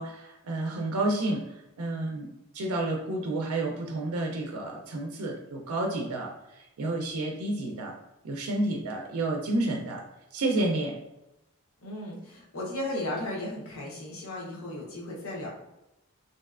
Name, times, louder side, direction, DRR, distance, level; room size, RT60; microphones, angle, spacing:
voice 1, 0.0-8.0 8.2-10.0 10.3-11.0, right 2 dB, 85° right, 1 dB, 0.4 m, -30 dB
voice 2, 11.8-15.5, left 1 dB, 75° left, -4 dB, 0.8 m, -35 dB
3.1 x 2.6 x 2.4 m, 0.90 s
head